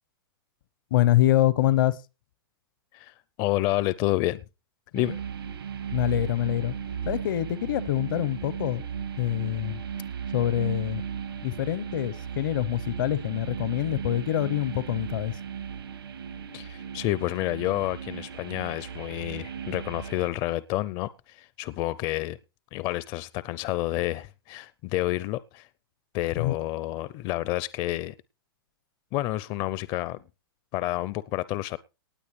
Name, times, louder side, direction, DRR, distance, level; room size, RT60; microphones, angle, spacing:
voice 1, 0.9-2.0 5.9-6.7 7.1-8.8 9.2-9.8 10.3-11.1 11.4-15.3 26.4-26.5, left 14 dB, 60° left, 0.9 m, -25 dB
voice 2, 2.9-4.4 4.9-5.2 16.5-22.4 22.7-25.7 26.1-28.1 29.1-30.2 30.7-31.8, left 17 dB, 35° left, 0.5 m, -29 dB
sound 1, 4.9-20.3, right 7 dB, 90° right, 2.2 m, -36 dB
19.0 x 8.3 x 3.3 m
hypercardioid pair, 125°, 12 cm